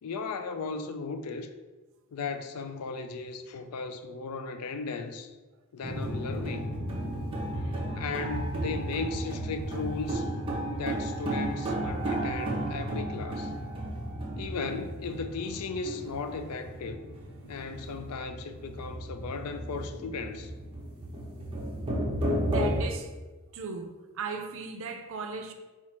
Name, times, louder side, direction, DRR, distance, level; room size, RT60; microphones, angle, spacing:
voice 1, 0.0-1.5 2.1-5.4 5.7-6.7 7.6-10.3 10.7-13.5 14.4-17.1 17.4-20.5, left 4 dB, 90° left, 8 dB, 0.4 m, -36 dB
sound 1, 5.8-22.8, right 1 dB, 25° right, 0.7 m, -33 dB
voice 2, 6.8-7.2 22.5-23.1 23.5-25.5, right 4 dB, 65° right, 5 dB, 0.5 m, -37 dB
4.2 x 2.4 x 4.2 m, 1.2 s
head